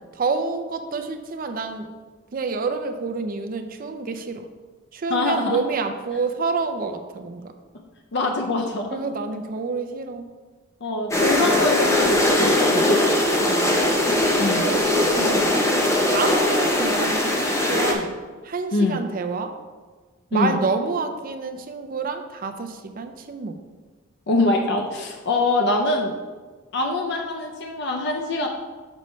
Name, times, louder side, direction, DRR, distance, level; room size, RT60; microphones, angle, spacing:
voice 1, 0.1-1.9 2.3-4.5 4.9-7.5 8.9-10.3 13.5-13.7 14.6-15.7 16.1-18.1 18.4-19.5 20.3-23.6, right 4 dB, 45° right, 7 dB, 0.5 m, -28 dB
voice 2, 5.1-5.6 8.1-9.0 10.8-13.1 14.4-14.7 18.7-19.0 20.3-20.6 24.3-26.1 26.7-28.5, left 2 dB, 60° left, 2 dB, 0.6 m, -24 dB
sound 1, 11.1-17.9, left 1 dB, 15° left, 0.8 m, -20 dB
6.3 x 5.5 x 3.2 m, 1.4 s
head